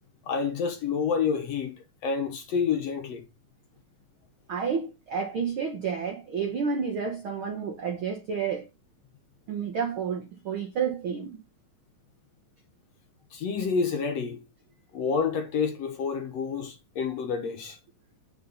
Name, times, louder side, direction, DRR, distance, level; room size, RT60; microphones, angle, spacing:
voice 1, 0.3-3.2 13.3-14.4 14.9-17.8, left 6 dB, 65° left, 1.8 m, -28 dB
voice 2, 4.5-8.7 9.5-11.4, right 6 dB, 70° right, 1.2 m, -30 dB
8.5 x 5.5 x 4.0 m
omnidirectional pair, 3.9 m